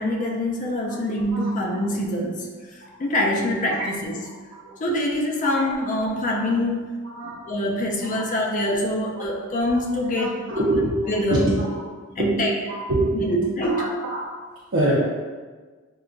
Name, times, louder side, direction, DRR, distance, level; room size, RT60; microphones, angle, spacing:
voice 1, 0.0-2.5 3.0-4.1 4.8-7.0 7.2-10.7 11.1-11.5 12.2-12.5 13.2-13.9, left 1 dB, 40° left, 0 dB, 0.4 m, -25 dB
voice 2, 5.4-5.9 6.3-6.4 7.1-7.3 8.7-8.8 10.2-10.9 11.3-11.7 12.2-13.1 13.6-14.2 14.7-14.9, right 2 dB, 65° right, -7 dB, 0.6 m, -25 dB
4.6 x 2.2 x 2.5 m, 1.4 s
head